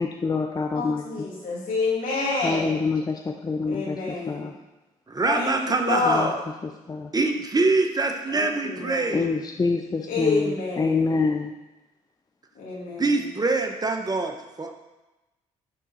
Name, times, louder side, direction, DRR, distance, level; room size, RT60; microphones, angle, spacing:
voice 1, 0.0-1.0 2.4-4.0 4.3-4.5 6.1-6.3 6.9-7.1 9.1-11.5, left 4 dB, 25° left, 3 dB, 0.6 m, -26 dB
voice 2, 0.7-2.8 3.6-4.5 5.2-6.3 8.3-9.1 10.1-11.1 12.6-13.3, left 3 dB, 75° left, -5 dB, 2.4 m, -28 dB
voice 3, 5.1-6.3 7.1-9.3 13.0-14.7, right 3 dB, 25° right, 5 dB, 0.9 m, -24 dB
10.5 x 3.7 x 4.1 m, 1.0 s
supercardioid pair, 60°, 15 cm